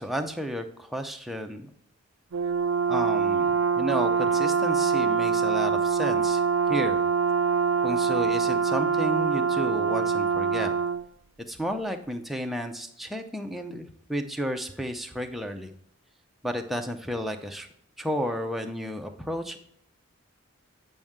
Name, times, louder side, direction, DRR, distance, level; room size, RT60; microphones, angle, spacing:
voice 1, 0.0-1.7 2.9-6.4 6.7-7.0 7.8-10.7 11.5-15.7 16.4-17.7 18.0-19.6, equal, ahead, 4 dB, 0.6 m, -32 dB
Brass instrument, 2.3-11.0, right 6 dB, 65° right, 0.4 m, -24 dB
8.9 x 5.4 x 3.6 m, 0.70 s
head